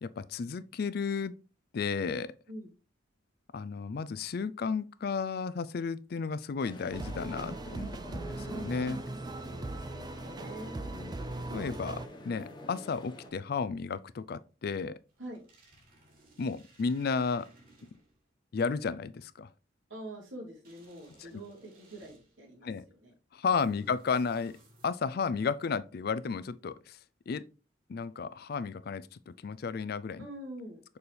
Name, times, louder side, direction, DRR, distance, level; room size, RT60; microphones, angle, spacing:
voice 1, 0.0-1.3 1.7-2.3 3.5-9.0 11.5-15.0 16.4-17.5 18.5-19.5 21.2-21.4 22.6-22.8 23.3-24.6 24.8-27.0 27.3-27.4 27.9-30.3, left 5 dB, 55° left, 0.4 m, -33 dB
sound 1, 6.6-13.3, left 1 dB, 25° left, 1.2 m, -47 dB
sound 2, 6.9-12.1, right 2 dB, 20° right, 0.4 m, -39 dB
voice 2, 9.4-11.5 15.2-15.4 19.9-23.1 30.2-30.8, right 1 dB, 90° right, 3.4 m, -46 dB
sound 3, 15.1-18.2 20.6-22.5 23.5-25.2, right 1 dB, 50° right, 2.8 m, -61 dB
6.8 x 4.2 x 3.3 m
head